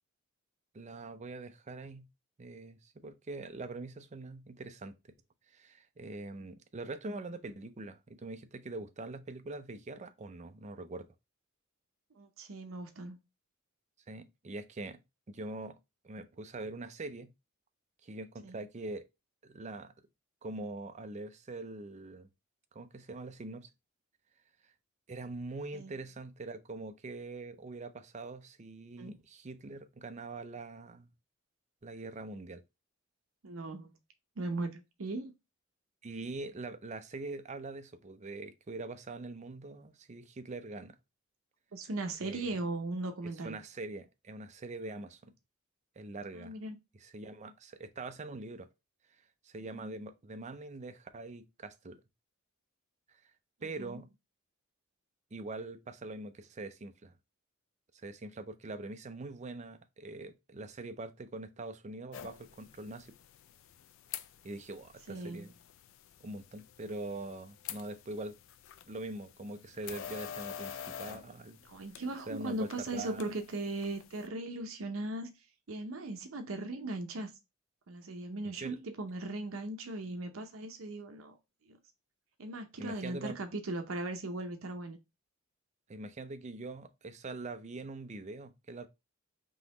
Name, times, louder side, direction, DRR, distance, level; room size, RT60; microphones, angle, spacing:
voice 1, 0.7-2.1 2.4-4.9 5.5-11.1 14.1-15.0 15.3-15.8 16.0-17.3 18.0-19.1 19.4-19.9 20.4-22.3 22.7-23.7 25.1-31.1 31.8-32.6 36.0-41.0 42.2-42.6 43.4-45.3 46.0-46.6 47.0-48.7 49.4-52.0 53.6-54.1 55.3-57.1 58.0-63.1 64.4-65.5 66.2-68.3 68.9-71.6 72.3-73.2 78.6-78.8 82.8-83.4 85.9-88.9, right 2 dB, 35° right, 0.5 m, -43 dB
voice 2, 12.1-13.2 18.4-18.6 25.7-25.9 29.0-29.2 33.4-33.9 34.4-35.3 41.7-43.6 44.9-45.0 46.3-46.8 49.7-50.0 53.8-54.0 65.1-65.5 71.6-75.3 75.7-77.3 77.9-81.4 81.6-81.8 82.4-85.0, right 2 dB, 75° right, 0.7 m, -38 dB
sound 1, 62.1-74.3, left 9 dB, 65° left, 0.4 m, -48 dB
3.8 x 3.0 x 3.8 m
head